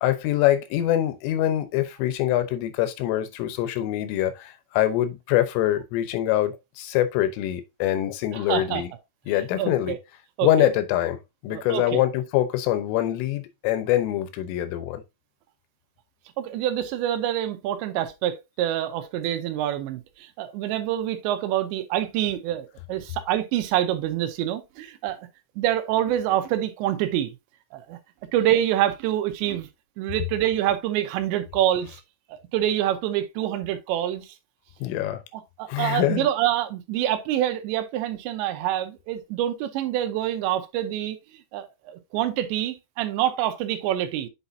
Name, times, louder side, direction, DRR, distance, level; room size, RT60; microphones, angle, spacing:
voice 1, 0.0-8.9 9.3-10.0 10.4-11.2 11.4-15.0 34.8-35.2 35.7-36.3, left 13 dB, 85° left, 3.4 m, -24 dB
voice 2, 8.3-8.8 9.6-10.0 10.4-10.7 11.5-12.0 16.4-25.3 25.6-27.3 27.7-28.0 28.3-29.7 30.0-32.0 32.5-34.3 35.3-41.2 41.5-44.3, right 12 dB, 80° right, 2.9 m, -26 dB
8.1 x 5.8 x 2.7 m
omnidirectional pair, 5.7 m